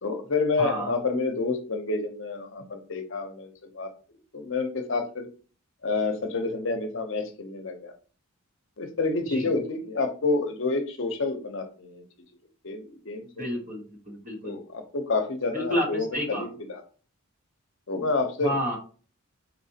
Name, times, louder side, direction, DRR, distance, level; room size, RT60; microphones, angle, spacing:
voice 1, 0.0-3.9 4.3-5.3 5.8-7.9 8.8-12.0 12.6-13.5 14.4-16.8 17.9-18.5, left 3 dB, 55° left, 6 dB, 0.7 m, -29 dB
voice 2, 0.6-0.9 9.3-9.5 13.4-14.5 15.5-16.5 18.4-18.8, equal, 35° right, 0 dB, 1.4 m, -30 dB
4.3 x 4.1 x 2.8 m, 0.38 s
head